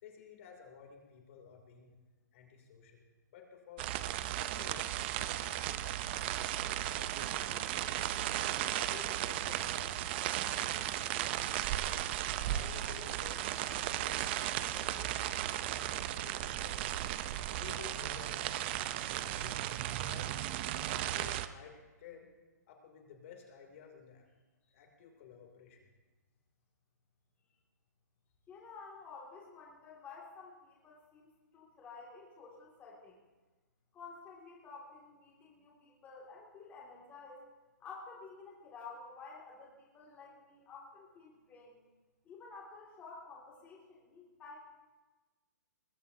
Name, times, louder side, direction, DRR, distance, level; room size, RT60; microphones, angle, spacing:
voice 1, 0.0-2.0 2.3-8.2 8.4-10.1 10.4-11.9 12.3-16.8 17.5-20.4 20.7-22.3 22.7-24.2 24.6-25.9, left 7 dB, 45° left, 2 dB, 2.9 m, -54 dB
sound 1, 3.8-21.5, right 13 dB, 35° right, 0.6 m, -35 dB
voice 2, 28.5-33.2 33.9-37.4 37.8-41.8 42.2-44.6, left 4 dB, 15° left, -4 dB, 2.4 m, -51 dB
21.0 x 21.0 x 2.8 m, 1.2 s
hypercardioid pair, 150°, 10 cm